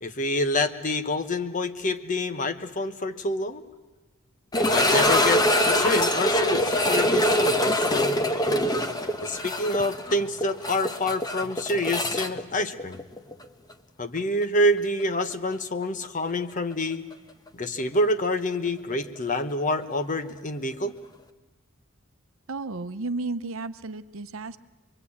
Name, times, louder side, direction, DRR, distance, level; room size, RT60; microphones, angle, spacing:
voice 1, 0.0-3.6 4.6-8.2 9.2-13.0 14.0-17.0 17.5-20.9, left 1 dB, 35° left, 10 dB, 1.1 m, -27 dB
sound 1, 4.5-13.4 13.7-13.8 14.4-14.5 17.1-17.2, left 1 dB, 20° left, 1.1 m, -24 dB
voice 2, 22.5-24.6, right 3 dB, 70° right, 11 dB, 0.8 m, -33 dB
26.0 x 22.5 x 8.6 m, 1.2 s
head